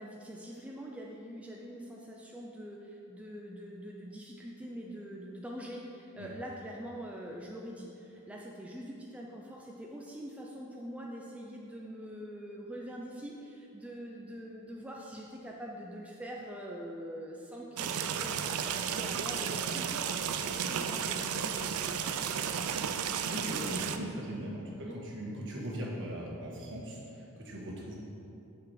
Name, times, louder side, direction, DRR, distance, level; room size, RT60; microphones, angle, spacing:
voice 1, 0.0-22.2 24.8-25.0, equal, 5° right, -2 dB, 0.5 m, -44 dB
sound 1, 17.8-24.0, right 7 dB, 75° right, 0.4 m, -33 dB
voice 2, 23.3-27.9, equal, 55° right, -3 dB, 1.5 m, -39 dB
7.1 x 6.2 x 4.8 m, 2.8 s
head